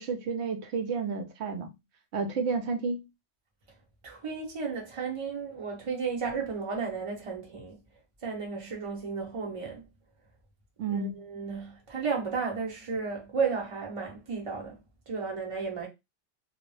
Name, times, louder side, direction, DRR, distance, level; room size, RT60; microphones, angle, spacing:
voice 1, 0.0-1.7 2.1-3.1 10.8-11.2, right 4 dB, 70° right, 0.8 m, -31 dB
voice 2, 4.0-7.8 8.2-9.8 10.9-14.8 15.1-15.9, right 5 dB, 30° right, 0.7 m, -33 dB
2.3 x 2.0 x 3.1 m
omnidirectional pair, 1.2 m